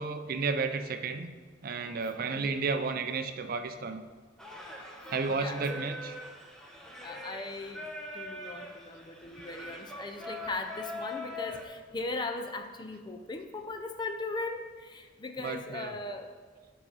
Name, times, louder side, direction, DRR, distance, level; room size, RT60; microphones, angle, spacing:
voice 1, 0.0-1.3 1.6-4.0 5.1-6.1 15.4-16.0, right 4 dB, 50° right, 8 dB, 0.4 m, -32 dB
voice 2, 2.3-2.7 5.3-5.8 7.0-7.9 8.1-16.3, left 2 dB, 25° left, 5 dB, 0.5 m, -38 dB
Singing, 4.4-11.6, left 2 dB, 5° left, 0.8 m, -42 dB
7.4 x 4.9 x 5.4 m, 1.5 s
head